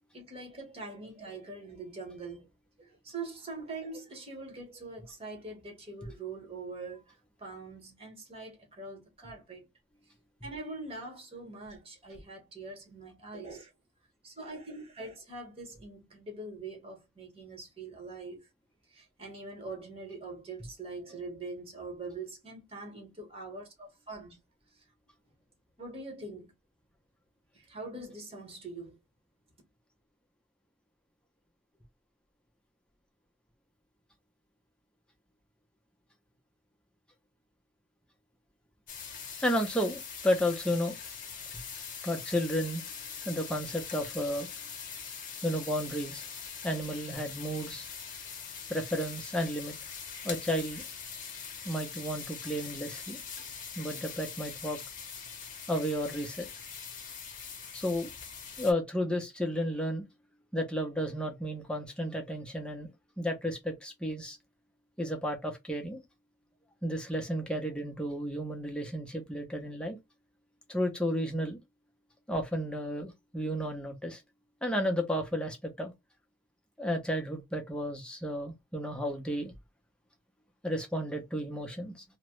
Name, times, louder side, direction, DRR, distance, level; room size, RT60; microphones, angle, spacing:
voice 1, 0.1-2.5 2.8-7.1 7.4-9.7 10.4-13.7 14.2-18.5 18.9-24.4 25.8-26.5 27.5-29.0, right 3 dB, 30° right, 1.1 m, -43 dB
sound 1, 38.9-58.7, left 6 dB, 40° left, 0.8 m, -43 dB
voice 2, 39.4-40.9 42.0-42.8 43.2-44.5 45.4-46.2 46.6-47.9 48.7-49.7 50.2-50.8 51.6-53.2 53.8-54.8 55.7-56.5 57.7-58.1 58.6-60.0 60.5-62.9 63.2-64.4 65.0-66.0 66.8-70.0 70.7-71.6 72.3-74.2 74.6-75.9 76.8-79.5 80.6-82.0, equal, 5° left, 0.6 m, -32 dB
2.9 x 2.1 x 2.9 m
head